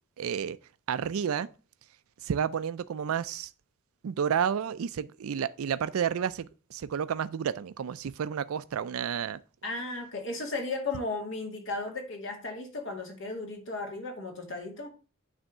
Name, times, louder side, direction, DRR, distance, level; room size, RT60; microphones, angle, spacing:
voice 1, 0.2-0.6 0.9-1.5 2.2-3.5 4.0-9.4, right 7 dB, 85° right, 0.4 m, -31 dB
voice 2, 9.6-14.9, left 3 dB, 65° left, 2.3 m, -35 dB
8.9 x 3.5 x 6.5 m
head